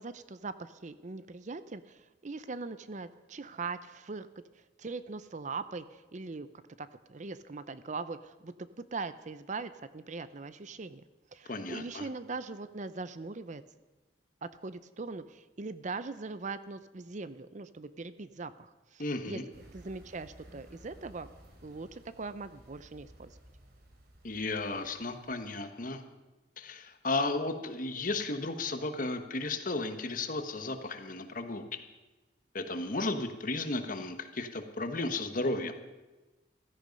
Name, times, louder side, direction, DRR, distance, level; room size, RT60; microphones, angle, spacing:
voice 1, 0.0-4.3 4.8-6.5 6.8-11.0 11.3-13.6 14.4-19.4 19.7-21.3 21.6-23.4, right 4 dB, 40° right, 13 dB, 0.6 m, -41 dB
voice 2, 11.5-12.1 19.0-19.4 24.2-26.0 26.6-31.6 32.5-35.7, left 2 dB, 50° left, 8 dB, 1.2 m, -34 dB
sound 1, 19.5-25.5, right 1 dB, 60° right, 3.1 m, -56 dB
15.5 x 13.5 x 5.3 m, 1.2 s
head